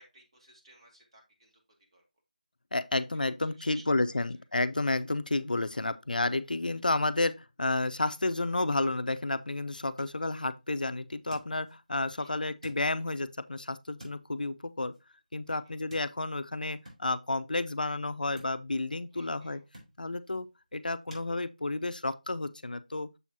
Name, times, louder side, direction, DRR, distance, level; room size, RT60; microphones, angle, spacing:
voice 1, 0.0-1.6 1.9-2.0 3.4-4.2 12.2-12.4 15.5-15.8 19.1-19.7, right 2 dB, 35° right, 2.1 m, -58 dB
voice 2, 2.7-14.9 15.3-19.6 20.0-20.5 20.7-23.2, left 2 dB, 75° left, 0.5 m, -31 dB
sound 1, 9.7-21.3, equal, 55° right, 3.7 m, -57 dB
6.9 x 6.0 x 2.8 m
figure-of-eight pair, 170°, 5 cm